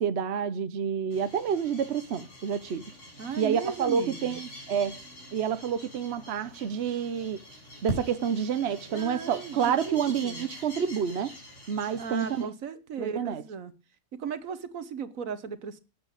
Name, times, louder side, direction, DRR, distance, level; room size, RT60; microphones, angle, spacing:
voice 1, 0.0-2.8 3.4-5.0 5.3-7.4 7.8-11.3 11.7-12.5 13.0-13.4, right 7 dB, 55° right, 1.0 m, -29 dB
sound 1, 1.1-12.4, equal, 60° left, 4.7 m, -44 dB
voice 2, 3.2-4.4 8.9-10.4 12.0-13.7 14.2-15.8, right 6 dB, 75° right, 1.5 m, -36 dB
9.2 x 8.4 x 8.5 m
omnidirectional pair, 1.4 m